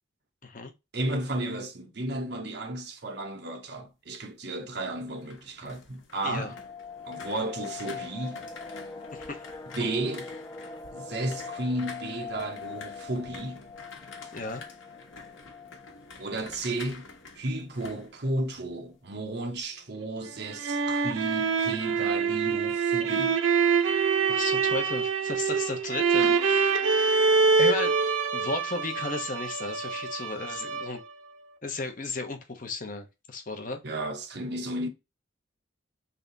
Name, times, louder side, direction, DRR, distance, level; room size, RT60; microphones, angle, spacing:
voice 1, 0.9-6.6 7.1-8.5 9.7-10.3 10.9-13.7 16.2-17.1 17.4-23.4 26.2-26.4 33.8-34.9, right 2 dB, 55° right, 0.8 m, -33 dB
sound 1, 4.9-18.9 19.2-19.6, left 4 dB, 70° left, 1.0 m, -48 dB
sound 2, 6.1-16.9 17.2-17.3 17.7-17.9 18.3-18.7 19.3-19.4 19.5-20.1 20.3-20.4, left 5 dB, 15° left, 0.3 m, -43 dB
voice 2, 9.1-9.4 14.3-14.6 24.3-26.9 27.6-31.0 31.6-33.8, left 3 dB, 40° left, 0.7 m, -35 dB
sound 3, 20.3-31.1, right 5 dB, 85° right, 0.6 m, -25 dB
3.4 x 2.7 x 3.8 m
head